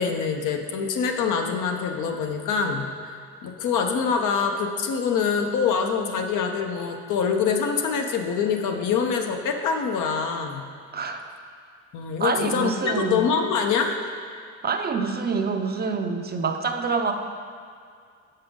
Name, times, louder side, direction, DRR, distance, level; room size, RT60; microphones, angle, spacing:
voice 1, 0.0-10.7 11.9-14.0, left 6 dB, 80° left, 4 dB, 0.7 m, -25 dB
voice 2, 10.9-11.3 12.2-13.3 14.6-17.1, right 4 dB, 35° right, 5 dB, 0.5 m, -26 dB
6.8 x 5.5 x 3.6 m, 2.2 s
cardioid pair, 90°, 30 cm